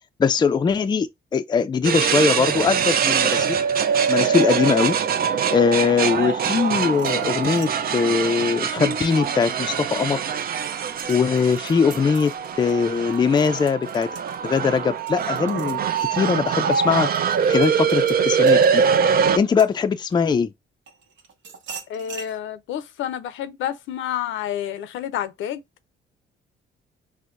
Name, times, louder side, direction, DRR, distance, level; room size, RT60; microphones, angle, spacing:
voice 1, 0.2-3.6 4.1-4.9 5.5-10.2 11.1-12.3 12.6-14.1 14.4-15.8 16.1-18.8 19.3-20.5, left 5 dB, 20° left, 0.4 m, -21 dB
sound 1, 1.8-19.4, right 7 dB, 50° right, 0.5 m, -23 dB
sound 2, 6.9-9.7 10.2-20.3 20.9-22.3, right 5 dB, 70° right, 0.9 m, -44 dB
voice 2, 21.9-25.6, left 10 dB, 80° left, 0.5 m, -29 dB
4.4 x 2.1 x 2.5 m
cardioid pair, 90°, 20 cm